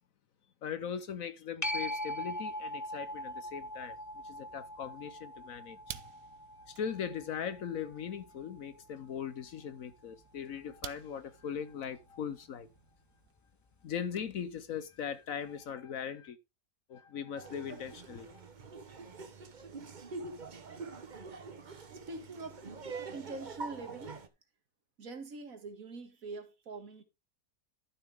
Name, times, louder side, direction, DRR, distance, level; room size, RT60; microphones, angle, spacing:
voice 1, 0.6-6.3 6.6-12.7 13.8-16.4 16.9-18.3, left 7 dB, 60° left, 1.1 m, -40 dB
sound 1, 1.6-8.8 14.3-14.4, left 1 dB, 30° left, 0.3 m, -41 dB
sound 2, 2.9-13.4, right 11 dB, 85° right, 1.4 m, -54 dB
Laughter, 17.4-24.3, right 4 dB, 35° right, 0.9 m, -45 dB
voice 2, 22.1-22.7 23.1-24.2 25.0-27.0, right 3 dB, 55° right, 2.0 m, -44 dB
12.0 x 7.1 x 3.6 m
omnidirectional pair, 1.7 m